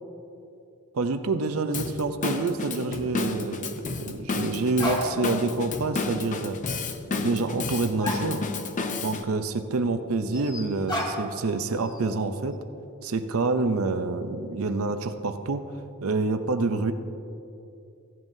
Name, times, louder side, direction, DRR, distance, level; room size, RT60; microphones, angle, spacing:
voice 1, 0.9-6.6 7.1-8.4 9.0-12.6 13.0-15.6 16.0-16.9, right 3 dB, 75° right, 8 dB, 0.6 m, -27 dB
Drum kit / Drum, 1.7-9.2, left 3 dB, 35° left, 0.6 m, -31 dB
sound 1, 4.8-5.5 5.8-5.9 7.7-7.8 8.0-8.8 9.1-9.2 10.3-11.5 11.8-12.3, left 1 dB, 20° left, 1.6 m, -33 dB
16.0 x 11.0 x 2.7 m, 2.7 s
head